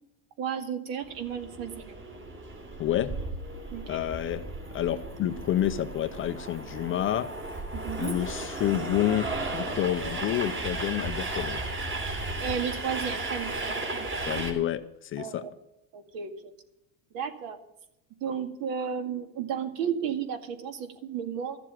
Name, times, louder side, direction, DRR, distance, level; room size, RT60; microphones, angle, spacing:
voice 1, 0.4-2.0 3.7-4.0 7.7-8.2 12.4-14.4 15.2-15.5 15.9-16.5 17.1-17.6 18.2-21.6, right 7 dB, 55° right, 7 dB, 2.2 m, -33 dB
Train, 1.0-14.5, right 2 dB, 25° right, 3.2 m, -35 dB
voice 2, 2.8-3.1 3.9-4.4 4.7-7.3 8.0-11.6 14.3-15.4, left 12 dB, 30° left, 10 dB, 0.6 m, -29 dB
14.0 x 7.5 x 8.9 m, 0.84 s
supercardioid pair, 140°, 42 cm